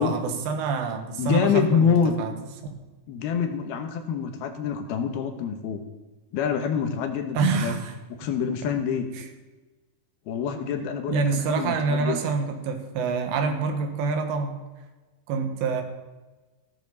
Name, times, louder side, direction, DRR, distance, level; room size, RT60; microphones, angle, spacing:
voice 1, 0.0-2.3 2.6-2.8 7.4-7.9 9.2-9.3 10.8-14.6 15.3-15.8, right 5 dB, 75° right, 6 dB, 3.6 m, -27 dB
voice 2, 1.2-2.1 3.1-5.8 6.3-7.7 8.2-9.1 10.3-12.2, left 6 dB, 70° left, 7 dB, 2.9 m, -26 dB
16.0 x 12.5 x 4.0 m, 1.2 s
omnidirectional pair, 5.1 m